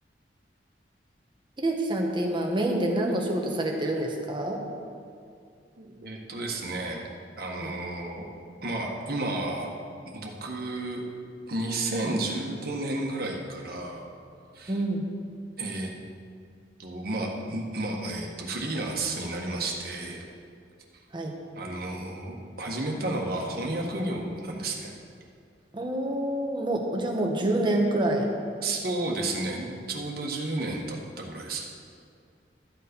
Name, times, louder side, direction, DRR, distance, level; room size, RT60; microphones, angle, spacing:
voice 1, 1.6-4.6 7.6-7.7 14.7-15.1 21.1-21.3 25.7-28.3, right 1 dB, 25° right, 1 dB, 1.3 m, -27 dB
voice 2, 5.8-7.0 7.4-8.3 8.6-9.7 10.1-11.0 11.5-14.1 14.5-14.7 15.6-15.9 16.8-20.2 21.5-24.9 28.6-31.6, right 2 dB, 60° right, 0 dB, 1.6 m, -32 dB
13.0 x 7.6 x 5.4 m, 2.3 s
head